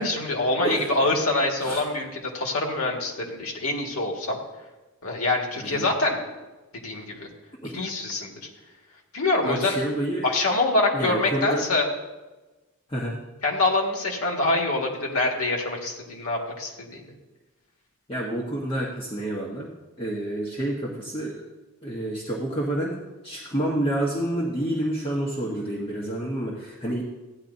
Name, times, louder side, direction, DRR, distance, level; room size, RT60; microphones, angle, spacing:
voice 1, 0.0-4.4 5.0-6.2 6.8-7.3 7.7-8.4 9.1-9.8 10.2-11.9 13.4-17.1, left 2 dB, 85° left, 1 dB, 1.9 m, -25 dB
voice 2, 0.6-1.1 1.6-1.8 5.6-5.9 7.7-7.9 9.4-10.3 10.9-11.7 12.9-13.2 18.1-19.7 20.0-21.4 21.8-23.0 23.2-27.0, right 1 dB, 25° left, -4 dB, 1.3 m, -28 dB
15.0 x 10.0 x 2.7 m, 1.2 s
head